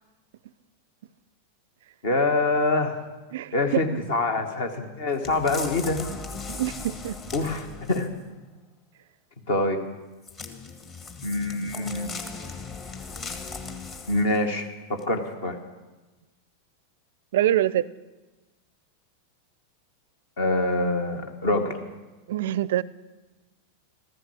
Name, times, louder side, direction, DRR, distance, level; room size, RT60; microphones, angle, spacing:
voice 1, 2.0-3.0 3.5-6.0 7.3-8.1 9.5-9.8 11.2-12.1 14.1-15.6 20.4-21.8, left 2 dB, 55° left, 1.7 m, -25 dB
sound 1, 5.2-8.2 10.2-14.4 15.0-15.1, left 4 dB, 30° left, 1.6 m, -38 dB
voice 2, 6.5-7.2 17.3-17.9 22.3-22.8, right 12 dB, 55° right, 0.4 m, -24 dB
14.5 x 14.0 x 6.4 m
figure-of-eight pair, 90°, 0 cm